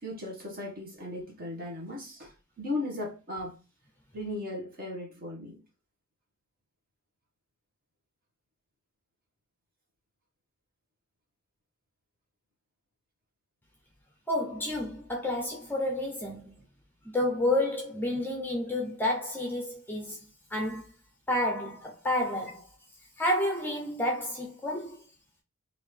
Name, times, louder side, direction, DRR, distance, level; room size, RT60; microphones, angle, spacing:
voice 1, 0.0-3.6 4.1-5.6, left 2 dB, 40° right, 1.4 m, -37 dB
voice 2, 14.3-16.5 17.0-20.9 21.3-22.7 23.2-25.0, left 1 dB, 10° left, 0.6 m, -30 dB
4.0 x 2.6 x 3.3 m
head